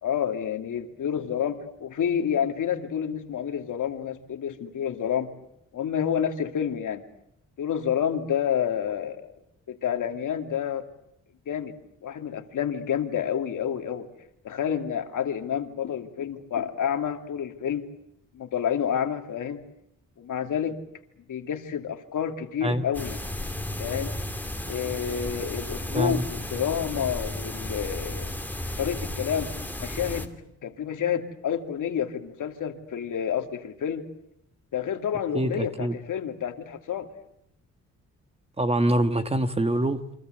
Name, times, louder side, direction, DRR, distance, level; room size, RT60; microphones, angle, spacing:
voice 1, 0.0-5.3 5.7-7.0 7.6-9.3 9.7-10.8 11.5-11.7 12.0-14.1 14.4-17.9 18.3-19.6 20.2-20.8 21.3-23.2 23.8-24.1 24.7-28.3 28.8-29.5 29.8-30.3 30.6-34.0 34.7-37.1, left 8 dB, 75° left, 6 dB, 2.6 m, -29 dB
sound 1, 22.9-30.3, left 1 dB, 5° left, 2.7 m, -34 dB
voice 2, 25.9-26.3 35.3-36.0 38.6-40.0, right 1 dB, 20° right, 9 dB, 1.5 m, -25 dB
29.0 x 24.5 x 8.1 m, 0.77 s
wide cardioid pair, 130°, 32 cm